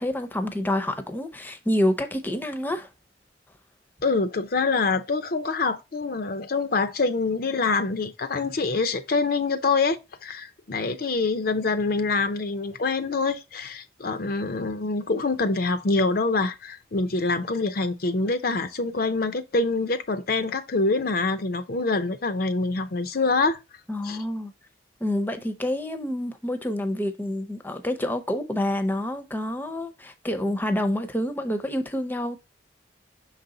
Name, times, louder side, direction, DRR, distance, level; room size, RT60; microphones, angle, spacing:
voice 1, 0.0-2.9 23.9-24.5 25.0-32.4, left 1 dB, 10° left, 0.6 m, -27 dB
voice 2, 4.0-23.6 24.0-24.2, left 3 dB, 55° left, 0.5 m, -25 dB
6.2 x 4.0 x 3.8 m
head